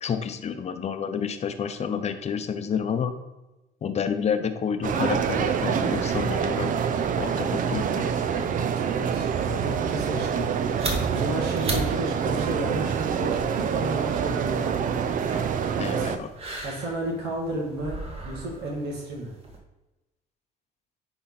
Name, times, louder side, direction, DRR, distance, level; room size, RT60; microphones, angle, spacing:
voice 1, 0.0-3.1 3.8-6.7 7.2-8.4 15.8-16.3, left 7 dB, 40° left, 9 dB, 0.8 m, -29 dB
sound 1, 4.8-16.2, right 7 dB, 50° right, 0.6 m, -26 dB
voice 2, 8.5-14.9 15.9-16.1 16.6-18.0 18.3-19.3, right 1 dB, 75° right, -2 dB, 2.2 m, -32 dB
sound 2, 10.4-19.6, right 2 dB, 35° right, 1.8 m, -37 dB
10.0 x 4.0 x 4.1 m, 1.0 s
cardioid pair, 110°, 17 cm